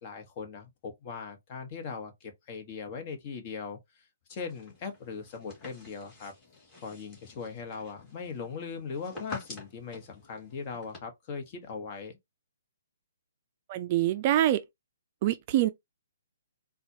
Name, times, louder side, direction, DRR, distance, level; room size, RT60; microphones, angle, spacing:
voice 1, 0.0-6.3 6.8-12.1, left 5 dB, 35° left, 1.2 m, -40 dB
sound 1, 4.3-11.0, left 3 dB, 20° left, 1.9 m, -48 dB
voice 2, 13.7-14.6 15.2-15.7, right 13 dB, 35° right, 0.4 m, -25 dB
4.1 x 2.3 x 2.8 m
hypercardioid pair, 140°, 0 cm